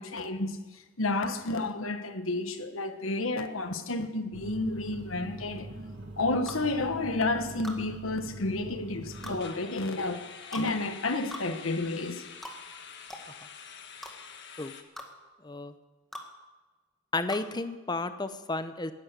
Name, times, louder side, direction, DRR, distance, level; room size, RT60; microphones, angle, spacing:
voice 1, 0.0-5.7 6.2-12.2, left 2 dB, 90° left, 1.4 m, -31 dB
sound 1, 2.9-3.2 3.5-3.7 4.1-4.2 9.1-14.8, left 6 dB, 60° left, 1.4 m, -47 dB
sound 2, 4.3-9.4, right 2 dB, 60° right, 1.8 m, -43 dB
sound 3, 6.5-6.6 7.6-7.8 9.2-9.4 10.5-10.7 11.3-11.5 12.4-12.6 13.1-13.3 14.0-14.1 15.0-15.1 16.1-16.3 17.3-17.5, equal, ahead, 1.7 m, -41 dB
voice 2, 15.4-15.7 17.1-18.9, left 3 dB, 20° left, 0.8 m, -32 dB
18.5 x 11.0 x 6.8 m
head